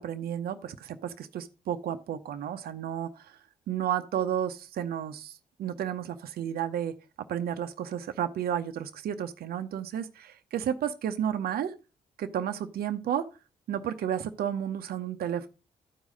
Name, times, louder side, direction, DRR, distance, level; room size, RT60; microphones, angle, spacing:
voice 1, 0.0-3.4 3.7-6.9 7.3-11.7 12.2-13.3 13.7-15.5, right 9 dB, 65° right, 0.7 m, -32 dB
12.0 x 4.8 x 5.1 m
hypercardioid pair, 45°, 17 cm